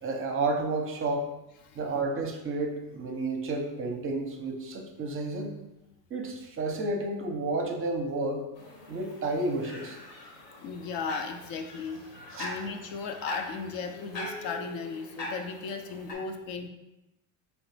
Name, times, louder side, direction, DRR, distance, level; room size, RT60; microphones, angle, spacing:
voice 1, 0.0-1.3 1.8-5.5 6.1-8.4 8.9-10.0 12.3-12.5, right 2 dB, 30° right, 3 dB, 0.6 m, -31 dB
sound 1, 8.6-16.1, left 1 dB, 75° left, 1.3 m, -42 dB
voice 2, 10.6-12.0 12.4-16.7, left 5 dB, 55° left, 6 dB, 0.5 m, -36 dB
3.9 x 3.0 x 3.3 m, 0.93 s
supercardioid pair, 115°, 42 cm